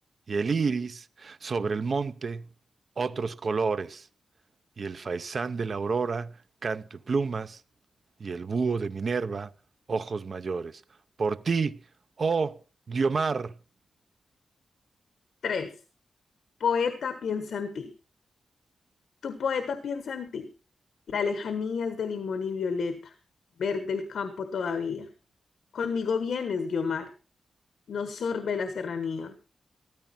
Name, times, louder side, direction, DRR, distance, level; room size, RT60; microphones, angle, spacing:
voice 1, 0.3-2.5 3.0-4.1 4.8-7.6 8.2-9.5 9.9-10.8 11.2-11.8 12.2-12.6 12.9-13.6, right 4 dB, 45° right, 0.6 m, -29 dB
voice 2, 15.4-15.8 16.6-17.9 19.2-20.5 21.1-23.1 23.6-25.1 25.7-27.1 27.9-29.4, left 5 dB, 75° left, 1.3 m, -30 dB
14.0 x 13.5 x 4.3 m
wide cardioid pair, 165°, 0 cm